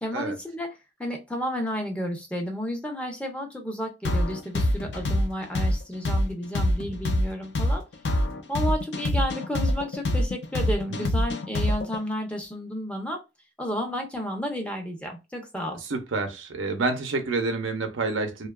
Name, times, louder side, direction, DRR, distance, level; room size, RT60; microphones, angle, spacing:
voice 1, 0.0-0.7 1.0-7.8 8.5-13.2 13.6-15.8, equal, 5° left, 0.6 m, -32 dB
sound 1, 4.0-12.0, left 1 dB, 65° left, 0.5 m, -25 dB
voice 2, 15.9-18.5, right 3 dB, 85° right, 0.6 m, -28 dB
2.7 x 2.3 x 2.2 m
head